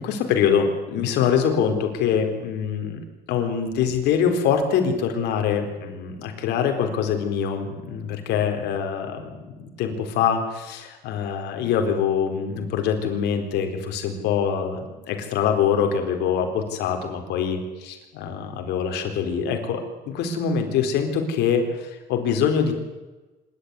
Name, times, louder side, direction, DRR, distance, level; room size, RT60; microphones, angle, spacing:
voice 1, 0.0-3.0 3.3-22.7, left 7 dB, 85° left, 5 dB, 4.1 m, -24 dB
26.0 x 12.5 x 9.8 m, 1.2 s
cardioid pair, 110°, 17 cm